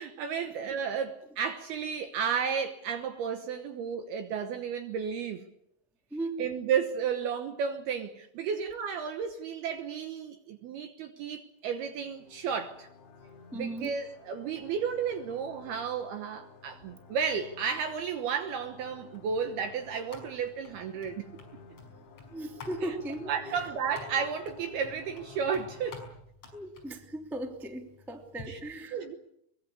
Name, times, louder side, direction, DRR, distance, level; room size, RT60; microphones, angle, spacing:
voice 1, 0.0-5.5 6.4-12.9 13.5-21.2 23.3-26.0 28.5-28.6 28.9-29.2, right 7 dB, 70° right, 2.5 m, -33 dB
sound 1, 11.9-26.1, left 5 dB, 65° left, 4.3 m, -52 dB
voice 2, 13.5-13.9 22.3-23.7 26.5-29.2, right 1 dB, ahead, 1.0 m, -38 dB
sound 2, 18.8-28.5, left 3 dB, 30° left, 6.3 m, -51 dB
23.0 x 21.0 x 8.5 m
omnidirectional pair, 5.8 m